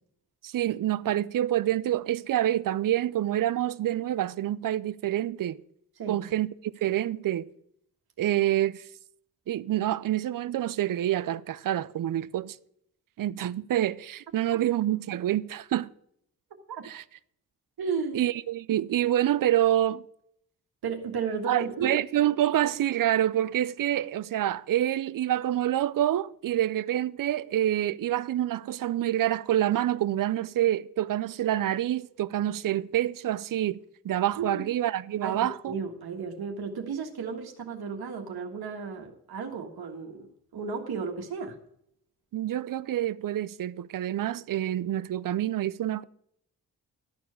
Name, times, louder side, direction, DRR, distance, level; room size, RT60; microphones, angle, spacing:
voice 1, 0.4-5.6 6.1-7.5 8.2-8.9 9.5-12.6 13.2-15.9 16.8-17.0 18.1-20.0 21.5-33.8 34.0-35.8 42.3-46.0, right 12 dB, 60° right, 0.6 m, -27 dB
voice 2, 17.8-18.3 20.8-21.9 34.4-34.7 35.2-40.3 40.5-41.6, right 5 dB, 80° right, 1.6 m, -34 dB
13.0 x 4.5 x 8.5 m
supercardioid pair, 45°, 37 cm